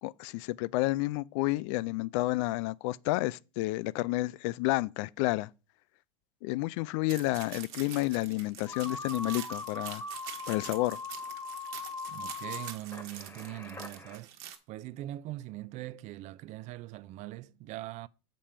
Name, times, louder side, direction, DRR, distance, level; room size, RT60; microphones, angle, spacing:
voice 1, 0.0-5.5 6.4-10.0 10.5-11.0, left 19 dB, 60° left, 0.4 m, -30 dB
sound 1, 7.1-14.6, right 11 dB, 60° right, 1.3 m, -46 dB
sound 2, 8.7-14.2, left 4 dB, 15° left, 1.3 m, -41 dB
voice 2, 12.1-14.3 14.7-18.1, right 16 dB, 45° right, 0.4 m, -41 dB
7.3 x 5.2 x 4.3 m
hypercardioid pair, 105°, 17 cm